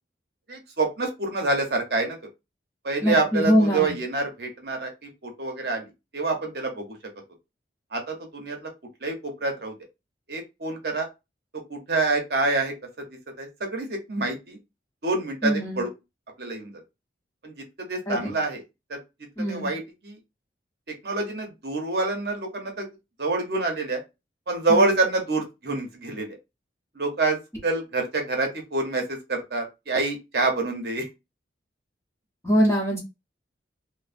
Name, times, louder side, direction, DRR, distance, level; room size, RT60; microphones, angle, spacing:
voice 1, 0.5-2.2 2.8-7.0 7.9-8.7 9.0-9.7 10.3-11.1 11.7-12.7 13.4-14.6 15.0-15.9 16.4-16.7 17.4-18.6 18.9-19.0 19.5-20.2 21.0-22.9 23.2-24.0 24.5-26.4 27.0-31.1, right 3 dB, 55° right, 2 dB, 0.8 m, -27 dB
voice 2, 3.0-3.9 15.4-15.8 18.1-18.3 19.4-19.7 24.7-25.0 32.4-33.0, equal, 15° left, -2 dB, 0.9 m, -23 dB
3.0 x 2.1 x 2.4 m, 0.24 s
head